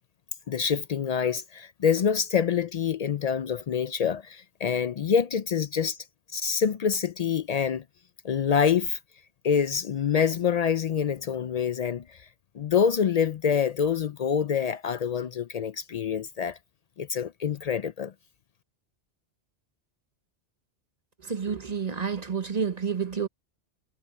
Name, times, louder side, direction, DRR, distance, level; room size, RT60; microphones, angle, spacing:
voice 1, 0.5-6.0 6.3-7.8 8.2-9.0 9.4-12.3 12.5-16.6 17.0-18.1, left 7 dB, 65° left, 0.3 m, -26 dB
voice 2, 21.2-23.3, right 6 dB, 35° right, 1.1 m, -29 dB
omnidirectional pair, 1.2 m